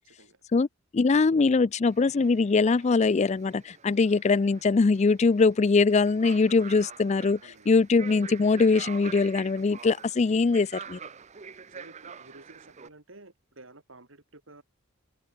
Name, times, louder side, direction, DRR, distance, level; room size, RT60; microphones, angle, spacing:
voice 1, 0.9-11.0, left 4 dB, 30° left, 0.4 m, -22 dB
sound 1, 1.8-12.9, right 6 dB, 35° right, 0.7 m, -46 dB
voice 2, 7.4-7.8 11.7-14.6, right 2 dB, 65° right, 3.1 m, -52 dB
open air
head